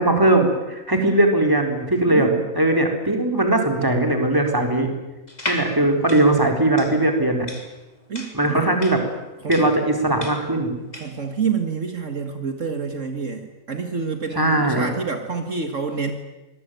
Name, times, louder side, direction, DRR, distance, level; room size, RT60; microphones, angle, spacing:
voice 1, 0.0-2.3 2.5-4.9 5.5-7.5 8.3-9.0 9.5-10.7 14.3-14.9, right 1 dB, 15° right, 3 dB, 4.3 m, -19 dB
voice 2, 2.0-2.5 8.1-8.7 9.4-9.6 10.9-16.1, right 5 dB, 60° right, 6 dB, 2.2 m, -28 dB
sound 1, 5.3-11.2, left 1 dB, 30° left, 3.6 m, -34 dB
25.5 x 20.5 x 9.3 m, 1.0 s
omnidirectional pair, 1.4 m